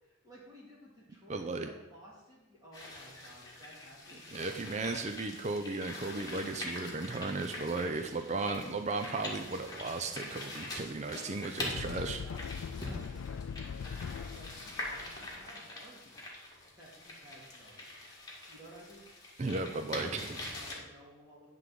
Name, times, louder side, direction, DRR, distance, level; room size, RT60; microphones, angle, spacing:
voice 1, 0.0-4.6 11.0-16.2 16.8-17.9 18.5-19.0 19.4-21.5, right 1 dB, 20° right, -6 dB, 2.1 m, -55 dB
voice 2, 1.3-1.7 4.3-12.2 19.4-20.4, right 3 dB, 35° right, 6 dB, 0.5 m, -35 dB
sound 1, 2.7-20.7, left 2 dB, 20° left, 2.0 m, -44 dB
sound 2, 11.7-15.4, left 6 dB, 90° left, 0.3 m, -41 dB
11.0 x 3.8 x 7.6 m, 1.1 s
head